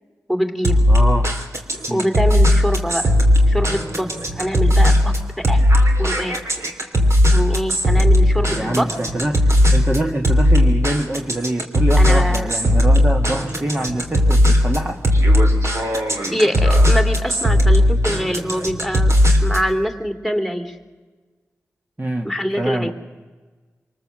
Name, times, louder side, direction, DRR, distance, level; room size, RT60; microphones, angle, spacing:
voice 1, 0.3-0.8 1.9-3.1 3.5-4.1 4.3-5.1 5.5-5.6 6.0-6.4 7.3-8.9 12.0-12.5 16.3-19.1 19.4-20.7 22.2-22.9, equal, 5° right, 7 dB, 2.8 m, -23 dB
sound 1, 0.6-19.7, left 1 dB, 55° right, 3.1 m, -17 dB
voice 2, 0.9-1.3 1.9-2.1 8.5-15.0 22.0-22.9, right 1 dB, 30° right, 2 dB, 1.6 m, -25 dB
26.5 x 19.5 x 7.6 m, 1.3 s
cardioid pair, 45°, 6 cm